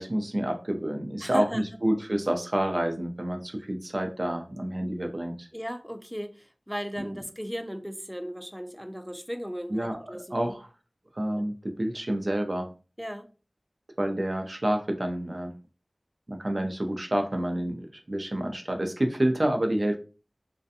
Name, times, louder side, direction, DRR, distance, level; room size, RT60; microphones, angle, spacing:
voice 1, 0.0-5.5 7.0-7.1 9.7-10.7 11.2-12.7 14.0-15.5 16.3-20.0, right 1 dB, 55° right, 0.5 m, -28 dB
voice 2, 1.2-1.8 5.5-10.5 11.3-11.5 13.0-13.3, equal, ahead, 0.3 m, -36 dB
2.5 x 2.2 x 2.6 m
wide cardioid pair, 50°, 0 cm